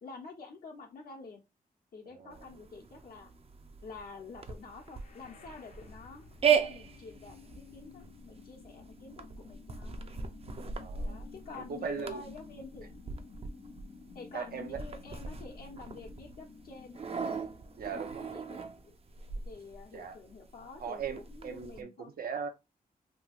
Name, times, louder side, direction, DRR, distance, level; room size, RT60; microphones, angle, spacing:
voice 1, 0.0-1.4 1.9-3.3 3.8-10.0 11.0-13.0 14.1-17.0 18.3-18.9 19.4-22.1, left 4 dB, 80° left, 1.0 m, -48 dB
voice 2, 2.1-2.4 10.8-11.2 11.7-12.2 14.3-14.8 17.8-18.4 19.9-20.2 20.8-22.5, right 6 dB, 80° right, 0.7 m, -39 dB
sound 1, 2.3-21.8, right 7 dB, 40° right, 0.4 m, -37 dB
sound 2, 4.6-18.6, left 5 dB, 55° left, 0.6 m, -53 dB
3.1 x 2.8 x 2.3 m
wide cardioid pair, 110°, 15 cm